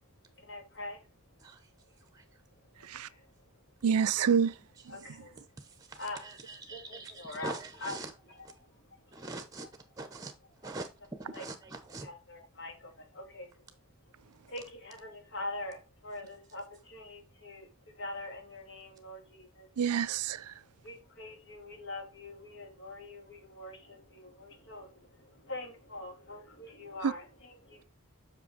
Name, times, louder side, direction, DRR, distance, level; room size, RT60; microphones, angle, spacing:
voice 1, 0.4-1.0 2.8-3.2 4.9-5.3 5.9-6.2 6.7-8.0 8.4-8.7 9.0-9.2 11.3-11.4 12.0-13.6 14.5-17.7 17.9-19.7 20.8-27.8, left 2 dB, 55° left, 2.8 m, -44 dB
voice 2, 3.8-4.5 4.9-5.0 19.8-20.5 27.0-27.1, right 7 dB, 80° right, 0.5 m, -27 dB
voice 3, 4.8-5.2 5.9-8.2 9.1-9.7 10.0-10.3 10.6-10.9 11.3-12.1, right 3 dB, 15° right, 0.9 m, -43 dB
7.9 x 5.9 x 4.1 m
head